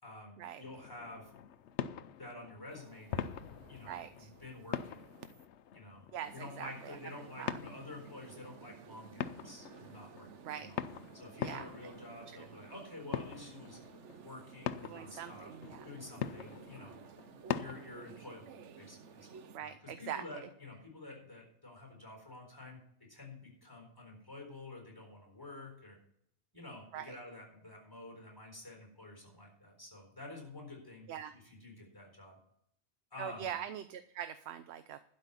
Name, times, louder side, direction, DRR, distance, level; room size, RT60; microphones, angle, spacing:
voice 1, 0.0-1.3 2.2-3.3 3.7-5.0 5.7-6.0 6.3-10.8 11.1-13.8 14.2-15.5 15.8-17.0 17.6-26.0 26.5-32.4 33.1-33.5, left 2 dB, 20° left, 1 dB, 4.1 m, -50 dB
sound 1, 0.6-18.1, left 9 dB, 75° left, 0.9 m, -44 dB
sound 2, 2.7-5.5 6.2-19.6, right 6 dB, 90° right, 1.1 m, -54 dB
voice 2, 3.9-4.3 6.1-7.0 7.4-7.6 10.4-10.7 11.4-11.9 12.3-12.5 14.8-15.9 19.5-20.2 26.9-27.1 31.1-31.3 33.2-35.0, right 9 dB, 70° right, 11 dB, 0.8 m, -43 dB
12.0 x 5.3 x 8.4 m, 0.71 s
omnidirectional pair, 1.2 m